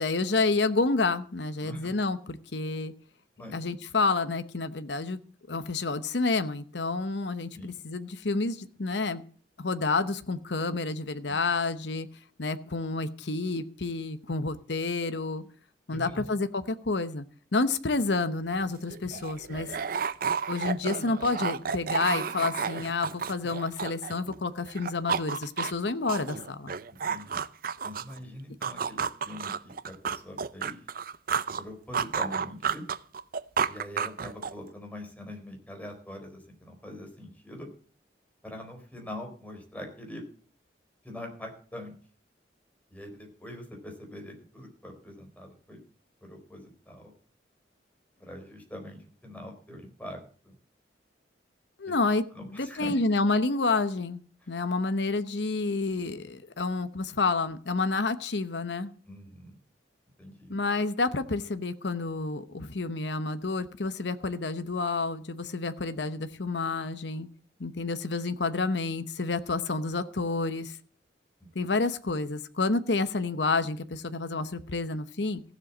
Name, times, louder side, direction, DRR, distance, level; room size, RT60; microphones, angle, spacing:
voice 1, 0.0-2.9 3.5-5.2 5.5-9.2 9.6-12.1 12.4-15.4 15.9-17.2 17.5-19.8 20.5-26.7 51.8-54.2 54.5-58.9 60.5-67.3 67.6-70.8 71.5-75.4, left 3 dB, 70° left, 11 dB, 1.0 m, -29 dB
voice 2, 1.6-2.0 3.4-3.6 7.5-7.7 11.3-11.4 15.9-16.3 19.0-19.2 26.9-27.4 27.8-30.8 31.6-32.8 33.7-37.7 38.4-40.2 41.0-41.9 42.9-45.8 46.2-47.1 48.2-50.5 51.9-52.0 52.3-52.9 59.1-59.6 60.2-60.5, left 1 dB, 10° left, 3 dB, 4.4 m, -43 dB
sound 1, 18.5-18.6 18.9-24.4 24.7-28.2 28.6-31.6 31.9-34.7, right 6 dB, 55° right, 0.6 m, -31 dB
15.5 x 7.6 x 7.3 m, 0.42 s
head